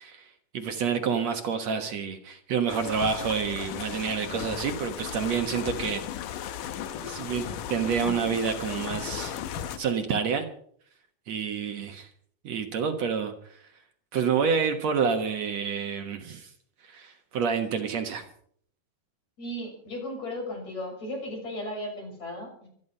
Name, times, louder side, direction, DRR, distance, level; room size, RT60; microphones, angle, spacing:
voice 1, 0.0-6.0 7.0-9.4 9.8-10.5 11.3-12.1 12.4-13.3 14.1-16.5 16.9-18.2, right 6 dB, 60° right, 6 dB, 2.4 m, -28 dB
sound 1, 2.7-9.8, left 10 dB, 80° left, 2.7 m, -36 dB
voice 2, 19.4-22.7, left 1 dB, 55° left, 1 dB, 7.9 m, -35 dB
24.5 x 10.5 x 5.5 m, 0.62 s
omnidirectional pair, 3.7 m